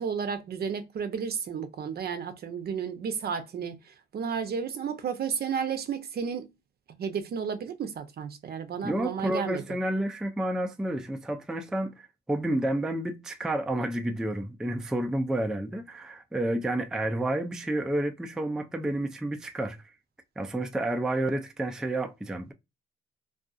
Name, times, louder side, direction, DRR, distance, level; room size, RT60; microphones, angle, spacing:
voice 1, 0.0-3.8 4.1-6.5 7.0-9.6, right 7 dB, 50° right, 0.6 m, -32 dB
voice 2, 8.8-19.9 20.4-22.5, right 1 dB, 5° right, 0.3 m, -30 dB
2.6 x 2.4 x 2.3 m
cardioid pair, 90°, 20 cm